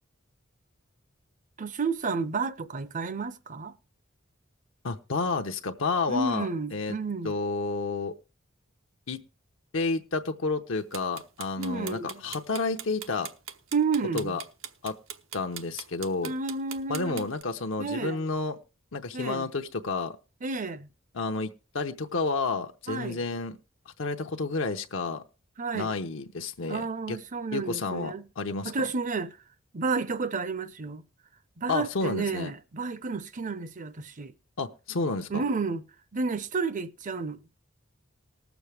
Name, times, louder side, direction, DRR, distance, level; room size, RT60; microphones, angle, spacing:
voice 1, 1.6-3.8 6.1-7.3 11.6-12.2 13.7-14.4 16.2-17.3 17.8-18.2 19.1-19.5 20.4-20.9 22.9-23.2 25.6-25.9 26.7-28.2 28.6-29.4 29.7-31.0 31.6-34.3 35.3-35.8 36.1-37.4, right 4 dB, 40° right, 0.6 m, -31 dB
voice 2, 4.8-7.0 7.2-8.1 9.1-9.2 9.7-13.3 14.1-14.4 14.8-14.9 15.3-16.3 16.9-18.6 18.9-20.2 21.1-23.6 24.0-25.2 25.7-27.2 27.5-28.9 31.7-32.5 34.6-35.4, left 3 dB, 75° left, 0.8 m, -30 dB
sound 1, 10.9-17.4, right 9 dB, 90° right, 0.9 m, -40 dB
19.5 x 7.1 x 3.4 m
head